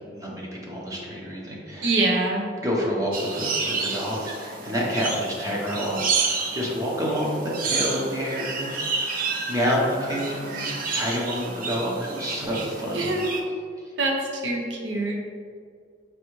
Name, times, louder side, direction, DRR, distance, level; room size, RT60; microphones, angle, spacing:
voice 1, 0.1-1.9 2.6-13.1, equal, 20° right, -4 dB, 0.7 m, -28 dB
voice 2, 1.8-2.4 12.9-13.3 14.0-14.1 14.4-15.2, right 2 dB, 90° right, 1 dB, 0.7 m, -24 dB
sound 1, 3.1-13.4, right 4 dB, 50° right, 0.4 m, -30 dB
4.6 x 2.6 x 3.0 m, 2.1 s
head